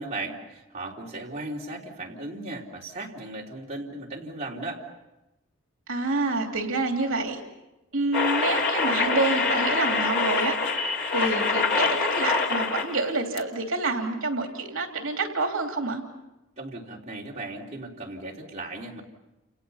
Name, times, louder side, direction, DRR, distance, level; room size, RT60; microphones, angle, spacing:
voice 1, 0.0-4.8 16.6-19.0, right 2 dB, 30° right, -3 dB, 3.7 m, -36 dB
voice 2, 5.9-7.4 7.9-10.6 11.1-16.0, right 3 dB, 70° right, 3 dB, 2.9 m, -27 dB
sound 1, 8.1-13.1 13.4-13.5, left 4 dB, 55° left, 2.7 m, -25 dB
30.0 x 29.0 x 5.7 m, 0.97 s
head